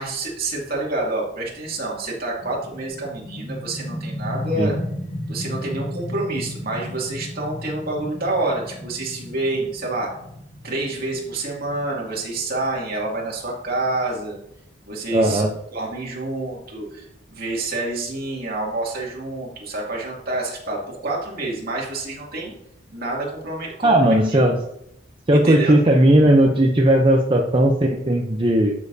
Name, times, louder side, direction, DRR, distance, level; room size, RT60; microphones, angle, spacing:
voice 1, 0.0-4.7 5.3-10.1 10.6-14.4 14.9-15.4 15.7-22.5 22.9-24.4 25.3-25.8, right 2 dB, 55° right, -3 dB, 2.5 m, -28 dB
sound 1, 2.4-13.8, left 1 dB, 80° left, 2.9 m, -34 dB
voice 2, 15.1-15.5 23.8-24.6 25.3-28.7, right 1 dB, 30° right, 1 dB, 0.7 m, -16 dB
12.0 x 6.5 x 2.7 m, 0.77 s
head